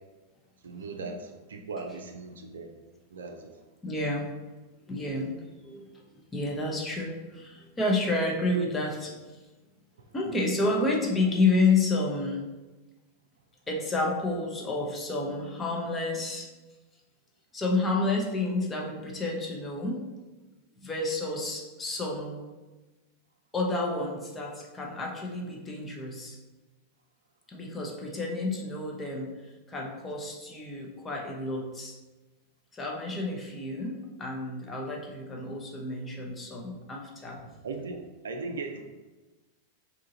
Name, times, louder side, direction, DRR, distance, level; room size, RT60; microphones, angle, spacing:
voice 1, 0.6-2.7 3.1-3.5 37.4-38.0 38.2-38.8, right 3 dB, 65° right, 4 dB, 0.4 m, -38 dB
voice 2, 3.8-4.3 4.9-9.2 10.1-12.4 13.7-16.5 17.5-20.0 20.8-22.4 23.5-26.4 27.5-29.3 29.7-32.0 32.7-37.4, left 2 dB, 15° left, -1 dB, 0.8 m, -30 dB
3.7 x 2.8 x 3.9 m, 1.2 s
figure-of-eight pair, 90°, 0 cm